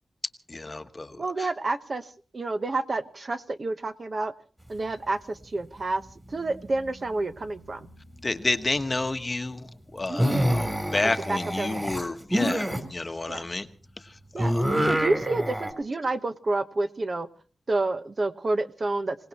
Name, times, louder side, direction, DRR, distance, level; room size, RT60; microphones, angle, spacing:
voice 1, 0.5-1.5 8.2-13.7 14.0-14.6, left 2 dB, 30° left, 8 dB, 1.1 m, -30 dB
voice 2, 1.2-4.3 4.7-7.9 10.1-10.4 11.3-11.8 13.3-13.5 14.3-17.3 17.7-19.3, right 2 dB, 40° right, 8 dB, 1.0 m, -29 dB
sound 1, 6.3-7.1 7.4-7.9 10.1-12.8 14.4-15.7, equal, 15° right, 3.2 m, -26 dB
27.0 x 18.0 x 2.9 m, 0.38 s
wide cardioid pair, 110°, 0 cm